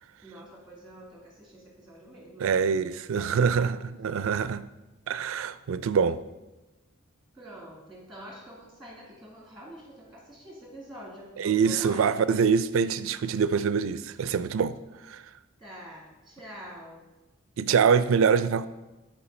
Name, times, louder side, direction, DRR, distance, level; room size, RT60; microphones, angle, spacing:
voice 1, 0.2-2.5 3.1-3.7 7.3-12.2 15.6-17.0, equal, ahead, 1.6 m, -46 dB
voice 2, 2.4-3.8 4.0-4.6 5.1-6.2 11.4-14.8 15.1-15.2 17.6-18.7, right 6 dB, 70° right, 0.3 m, -24 dB
8.7 x 4.4 x 4.2 m
head